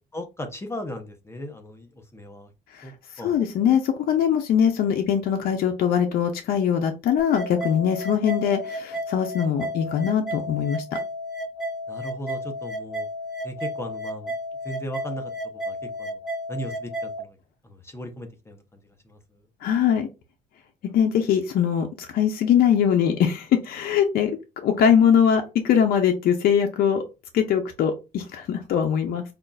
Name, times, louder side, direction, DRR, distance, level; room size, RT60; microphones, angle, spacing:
voice 1, 0.1-2.5 2.8-2.9 3.2-3.4 11.9-13.1 13.4-14.3 14.6-15.3 15.7-16.2 16.5-17.4 17.6-18.8 19.0-19.2, equal, 15° left, 6 dB, 0.6 m, -37 dB
voice 2, 3.2-10.8 19.6-20.1 20.9-24.3 24.6-27.0 27.3-29.2, left 8 dB, 60° left, 4 dB, 0.6 m, -22 dB
sound 1, 7.2-17.2, equal, ahead, 1.5 m, -33 dB
5.1 x 2.4 x 2.2 m, 0.27 s
cardioid pair, 110°, 17 cm